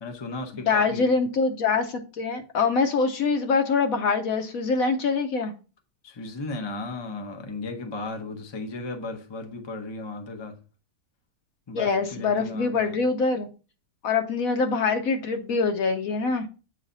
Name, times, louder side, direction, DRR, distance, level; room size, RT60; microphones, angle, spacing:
voice 1, 0.0-1.1 6.0-10.5 11.7-12.9, left 3 dB, 30° left, 3 dB, 0.4 m, -35 dB
voice 2, 0.5-5.5 11.7-13.5 14.0-16.5, left 4 dB, 65° left, 7 dB, 1.0 m, -24 dB
8.0 x 3.2 x 3.8 m, 0.35 s
omnidirectional pair, 1.8 m